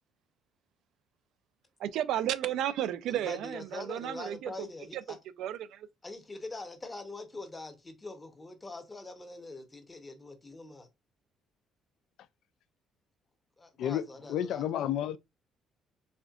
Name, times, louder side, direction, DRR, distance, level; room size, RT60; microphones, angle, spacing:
voice 1, 1.8-4.7 4.9-5.0 5.4-5.9, right 11 dB, 75° right, 0.4 m, -33 dB
voice 2, 3.1-5.2 6.0-10.9 13.6-14.9, left 2 dB, 15° left, 0.8 m, -44 dB
voice 3, 14.3-15.2, left 11 dB, 70° left, 0.3 m, -30 dB
4.2 x 3.5 x 2.4 m
cardioid pair, 145°, 0 cm